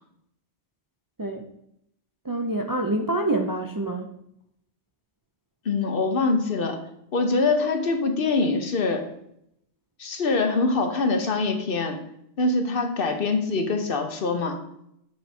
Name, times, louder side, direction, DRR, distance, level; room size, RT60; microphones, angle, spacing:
voice 1, 2.2-4.1, right 2 dB, 30° right, 3 dB, 0.4 m, -26 dB
voice 2, 5.6-6.8 7.1-9.1 10.0-12.0 12.4-14.6, left 3 dB, 60° left, 5 dB, 1.1 m, -24 dB
7.7 x 4.5 x 4.3 m, 0.75 s
omnidirectional pair, 1.1 m